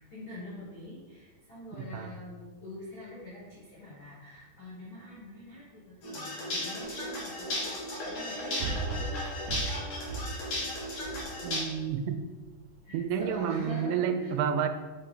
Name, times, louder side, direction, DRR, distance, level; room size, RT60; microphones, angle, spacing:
voice 1, 0.1-9.3 12.8-14.3, left 1 dB, 90° left, -8 dB, 1.1 m, -45 dB
voice 2, 1.7-2.2 11.4-12.2 12.9-14.7, right 8 dB, 85° right, 8 dB, 3.1 m, -30 dB
sound 1, 6.0-11.6, left 1 dB, 55° left, 1.8 m, -35 dB
sound 2, 6.8-6.9 8.6-11.9 12.4-12.5, right 3 dB, 55° right, 2.2 m, -36 dB
7.7 x 5.7 x 4.2 m, 1.3 s
omnidirectional pair, 5.4 m